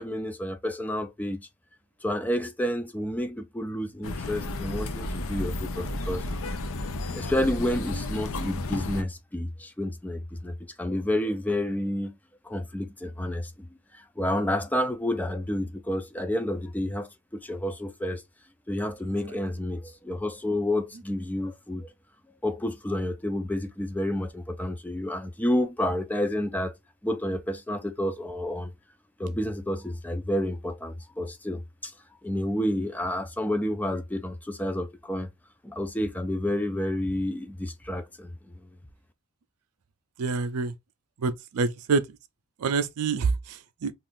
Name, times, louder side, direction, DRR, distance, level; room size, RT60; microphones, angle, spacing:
voice 1, 0.0-1.5 2.0-6.6 7.1-12.2 12.4-13.7 13.9-18.2 18.7-21.9 22.4-26.7 27.0-28.7 29.2-31.9 32.2-35.3 35.6-38.7, left 1 dB, 5° left, 0.3 m, -30 dB
sound 1, 4.0-9.0, left 2 dB, 65° left, 0.5 m, -32 dB
voice 2, 40.2-40.7 41.2-42.0 42.6-43.9, right 4 dB, 75° right, 0.4 m, -26 dB
2.5 x 2.5 x 3.6 m
head